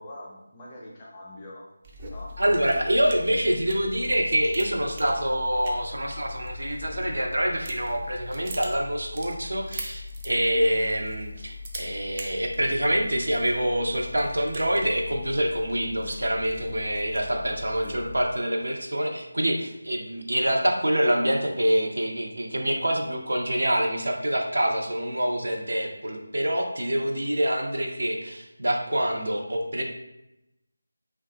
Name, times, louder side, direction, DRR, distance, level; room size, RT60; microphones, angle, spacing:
voice 1, 0.0-1.7 2.0-2.4 17.5-18.0, left 1 dB, 20° left, -4 dB, 0.6 m, -43 dB
sound 1, 1.8-18.3, left 2 dB, 30° right, 0.4 m, -40 dB
voice 2, 2.4-29.8, right 1 dB, 75° right, 1 dB, 0.6 m, -26 dB
2.6 x 2.3 x 3.8 m, 0.90 s
figure-of-eight pair, 165°, 0 cm